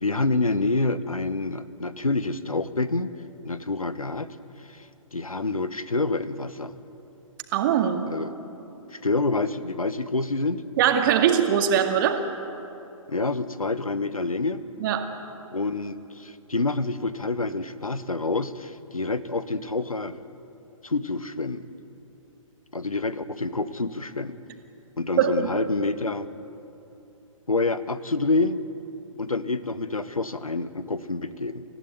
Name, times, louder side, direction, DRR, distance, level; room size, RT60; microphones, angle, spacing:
voice 1, 0.0-3.1 3.4-4.4 4.7-6.7 8.1-8.3 8.9-10.6 13.1-14.6 15.5-20.1 20.8-21.7 22.7-24.4 25.0-26.3 27.5-28.6 29.2-31.6, left 3 dB, 85° left, 14 dB, 1.2 m, -27 dB
voice 2, 7.5-8.0 10.8-12.2 14.8-15.0 25.2-25.5, right 8 dB, 35° right, 5 dB, 2.1 m, -21 dB
26.5 x 15.5 x 9.2 m, 2.9 s
figure-of-eight pair, 125°, 18 cm